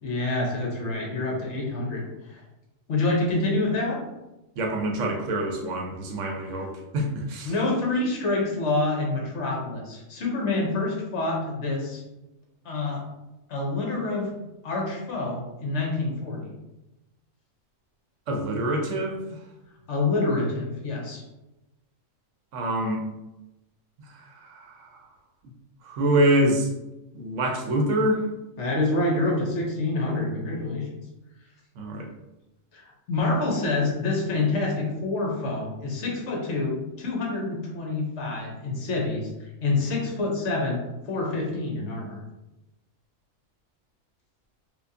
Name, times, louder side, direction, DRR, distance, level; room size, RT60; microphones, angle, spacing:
voice 1, 0.0-2.1 2.3-2.4 2.9-4.0 7.4-12.0 12.6-13.0 13.5-14.4 14.6-16.5 19.9-21.2 28.6-30.8 32.7-39.3 39.6-42.2, left 2 dB, 60° left, -1 dB, 1.2 m, -27 dB
voice 2, 4.6-7.5 18.3-19.2 22.5-23.0 24.5-24.7 25.8-26.7 27.1-28.2 31.8-32.1, right 1 dB, 70° right, 1 dB, 1.0 m, -25 dB
4.4 x 2.3 x 2.7 m, 0.97 s
omnidirectional pair, 1.4 m